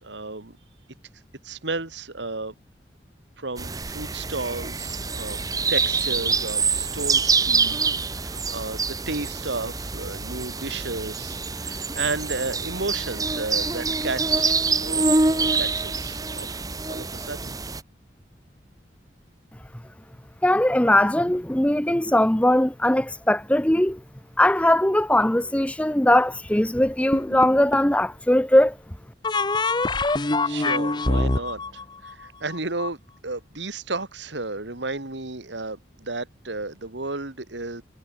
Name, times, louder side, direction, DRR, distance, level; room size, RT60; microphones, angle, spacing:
voice 1, 0.0-0.6 1.4-2.5 3.4-5.4 5.7-16.6 16.9-17.6 30.0-37.8, right 3 dB, 85° right, 2.4 m, -33 dB
sound 1, 3.6-17.8, right 4 dB, 20° right, 1.4 m, -26 dB
voice 2, 20.4-24.0 24.4-28.7, left 1 dB, 5° left, 0.7 m, -20 dB
sound 2, 27.1-28.0 29.2-32.9, left 2 dB, 25° left, 1.0 m, -25 dB
head